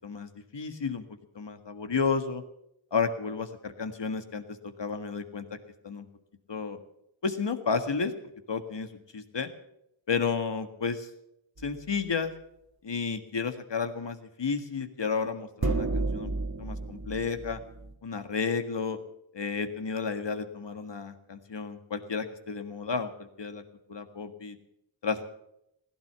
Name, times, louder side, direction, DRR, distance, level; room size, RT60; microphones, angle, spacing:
voice 1, 0.0-1.0 1.4-2.4 2.9-5.5 5.8-6.1 6.5-6.8 7.2-8.1 8.5-9.5 10.1-11.1 11.6-12.3 12.8-16.3 16.6-17.6 18.0-19.0 19.3-23.6 23.9-24.6 25.0-25.2, left 5 dB, 60° left, 8 dB, 1.7 m, -32 dB
sound 1, 11.6-11.9 15.6-17.9, right 3 dB, 50° right, 1.7 m, -31 dB
16.5 x 12.0 x 6.9 m, 0.79 s
cardioid pair, 55°, 48 cm